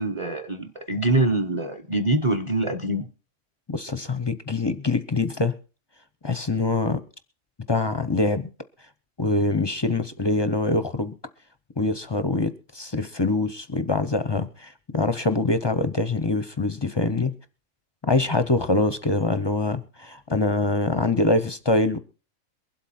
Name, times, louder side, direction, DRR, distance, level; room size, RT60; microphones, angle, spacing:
voice 1, 0.0-3.1, right 2 dB, 25° right, 8 dB, 0.8 m, -24 dB
voice 2, 3.7-5.6 6.2-7.0 7.7-8.5 9.2-11.2 11.8-17.3 18.0-22.0, left 2 dB, 30° left, 12 dB, 0.5 m, -24 dB
23.0 x 8.0 x 4.2 m, 0.34 s
omnidirectional pair, 1.5 m